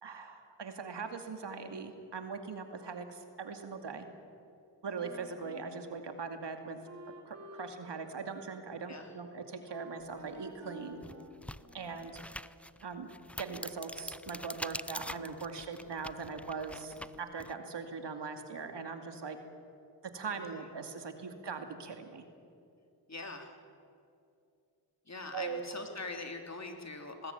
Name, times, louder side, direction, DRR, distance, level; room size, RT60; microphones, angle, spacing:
voice 1, 0.0-4.1 4.8-6.8 7.1-11.0 11.7-12.2 12.8-13.1 13.4-19.4 20.1-22.2 25.3-25.6, right 5 dB, 65° right, 6 dB, 2.5 m, -41 dB
Wind instrument woodwind instrument, 4.9-12.1, right 1 dB, 40° right, 4.7 m, -53 dB
sound 1, 10.3-10.4 10.9-17.5, left 1 dB, 5° left, 0.6 m, -45 dB
voice 2, 23.1-23.5 25.1-27.3, left 3 dB, 35° left, 4 dB, 3.3 m, -42 dB
19.5 x 19.0 x 9.4 m, 2.5 s
cardioid pair, 45°, 44 cm